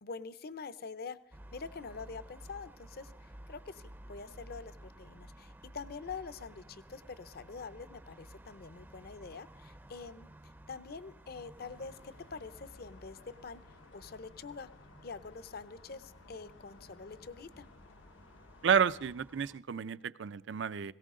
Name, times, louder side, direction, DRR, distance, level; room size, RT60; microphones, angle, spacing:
voice 1, 0.0-10.3 10.7-13.6 13.9-14.7 15.0-17.7, left 4 dB, 55° left, 15 dB, 0.6 m, -45 dB
sound 1, 1.3-19.6, right 1 dB, 10° right, 0.5 m, -55 dB
sound 2, 11.6-19.1, left 3 dB, 85° left, 0.9 m, -58 dB
voice 2, 18.6-20.9, right 7 dB, 70° right, 16 dB, 0.5 m, -30 dB
18.0 x 17.5 x 3.7 m, 0.72 s
head